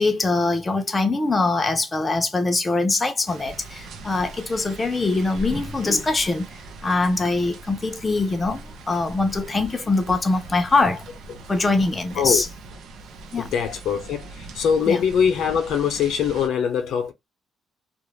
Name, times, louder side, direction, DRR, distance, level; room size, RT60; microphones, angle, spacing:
voice 1, 0.0-8.6 8.9-11.0 11.5-12.5 13.3-13.5 14.9-15.0, left 3 dB, 25° left, 0.5 m, -23 dB
sound 1, 3.3-16.5, right 2 dB, 75° right, 0.5 m, -40 dB
voice 2, 13.4-17.1, left 7 dB, 80° left, 0.6 m, -22 dB
2.4 x 2.0 x 3.1 m
cardioid pair, 90°, 0 cm